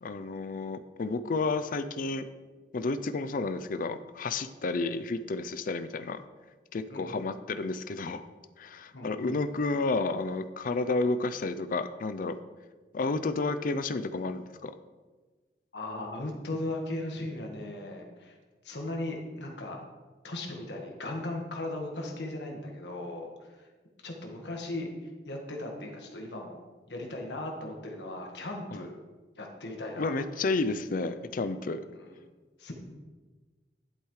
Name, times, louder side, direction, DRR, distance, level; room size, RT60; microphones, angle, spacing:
voice 1, 0.0-2.2 2.7-6.2 6.7-8.3 8.6-12.3 12.9-14.7 28.7-28.8 30.0-31.8, left 3 dB, 50° left, 11 dB, 0.5 m, -31 dB
voice 2, 6.9-7.3 8.9-9.1 15.7-18.4 18.6-19.8 20.2-23.7 24.0-26.6 26.9-29.0 29.3-30.1 30.5-30.6 31.9-32.2 32.6-32.7, left 1 dB, 75° left, 1 dB, 1.6 m, -37 dB
11.0 x 8.3 x 3.2 m, 1.3 s
head